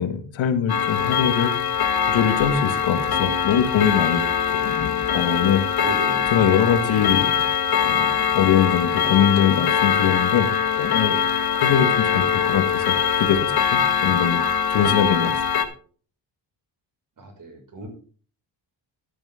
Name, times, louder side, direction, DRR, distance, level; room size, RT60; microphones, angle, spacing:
voice 1, 0.0-1.5 2.0-4.2 5.1-5.8 6.3-7.4 7.8-10.5 10.8-11.2 11.6-14.4 14.7-15.3, left 8 dB, 85° left, 9 dB, 1.5 m, -22 dB
Clock, 0.7-15.6, left 8 dB, 55° left, 1.5 m, -22 dB
voice 2, 5.8-6.3 17.2-17.9, right 3 dB, 45° right, 2 dB, 5.8 m, -35 dB
12.0 x 9.0 x 3.7 m, 0.42 s
cardioid pair, 75°, 45 cm